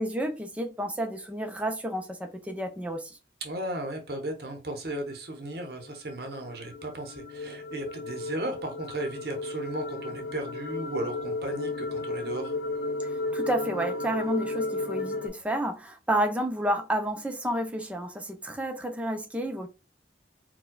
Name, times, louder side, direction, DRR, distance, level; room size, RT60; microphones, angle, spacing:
voice 1, 0.0-3.2 13.3-19.7, right 1 dB, 10° right, 0.5 m, -30 dB
voice 2, 3.4-12.5, right 1 dB, 60° right, 0.7 m, -35 dB
sound 1, 5.7-15.3, left 2 dB, 65° left, 0.5 m, -34 dB
4.4 x 2.2 x 2.2 m
head